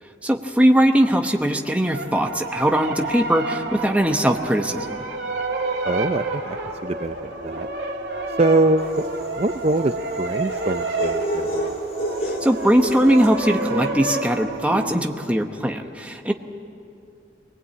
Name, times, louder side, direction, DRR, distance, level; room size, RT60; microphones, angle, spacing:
voice 1, 0.2-4.9 12.4-16.3, equal, 5° right, 5 dB, 0.9 m, -20 dB
sound 1, 1.9-15.0, right 2 dB, 65° right, 2.8 m, -29 dB
voice 2, 5.8-7.7 8.4-9.1 9.4-11.7, right 2 dB, 30° right, 8 dB, 0.5 m, -23 dB
sound 2, 8.9-13.5, equal, 50° left, 2.6 m, -30 dB
21.5 x 19.5 x 8.7 m, 2.6 s
head